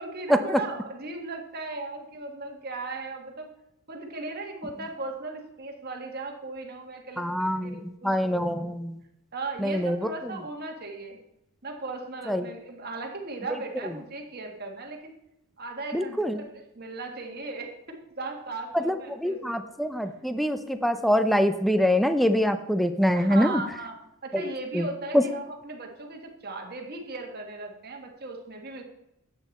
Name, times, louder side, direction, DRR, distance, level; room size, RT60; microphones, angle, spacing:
voice 1, 0.0-3.5 3.9-8.7 9.3-11.2 11.6-15.1 15.6-17.7 18.2-19.6 23.1-23.9 24.2-28.8, right 3 dB, 45° right, 3 dB, 1.6 m, -37 dB
voice 2, 7.2-9.0 9.6-10.0 12.3-12.5 15.9-16.4 18.8-18.9 19.2-23.6 24.3-24.9 25.1-25.2, equal, ahead, 9 dB, 0.5 m, -24 dB
10.5 x 8.3 x 4.1 m, 0.84 s
head